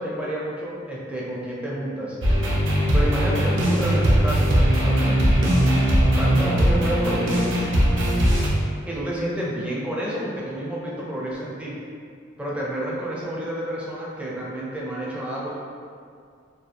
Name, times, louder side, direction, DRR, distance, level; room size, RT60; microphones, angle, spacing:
voice 1, 0.0-2.2 2.9-5.3 6.0-7.7 8.8-11.7 12.4-15.6, equal, 5° right, -6 dB, 0.4 m, -30 dB
sound 1, 2.2-8.5, equal, 65° right, 0.5 m, -19 dB
2.7 x 2.2 x 2.5 m, 2.2 s
head